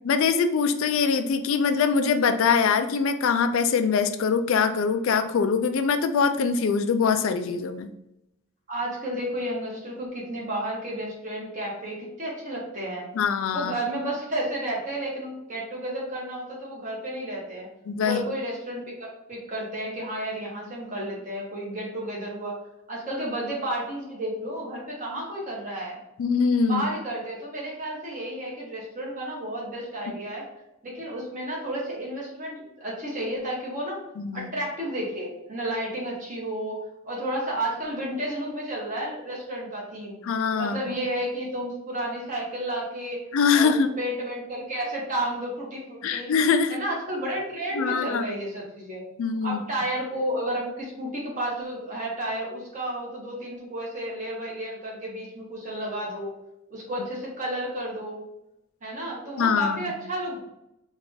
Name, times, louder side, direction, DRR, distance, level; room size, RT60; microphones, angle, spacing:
voice 1, 0.0-7.9 13.1-13.7 17.9-18.2 26.2-26.9 34.2-34.5 40.2-40.8 43.3-43.9 46.0-46.8 47.7-48.2 49.2-49.6 59.4-59.9, left 5 dB, 65° left, 8 dB, 0.3 m, -23 dB
voice 2, 8.7-13.1 13.5-17.7 18.0-22.6 22.9-26.0 26.6-30.4 30.8-34.0 34.3-36.8 37.0-40.2 40.6-43.2 43.5-46.3 46.7-49.0 49.4-56.3 56.7-58.2 58.8-60.4, right 1 dB, 35° right, -4 dB, 1.3 m, -32 dB
3.5 x 2.4 x 3.8 m, 0.85 s
head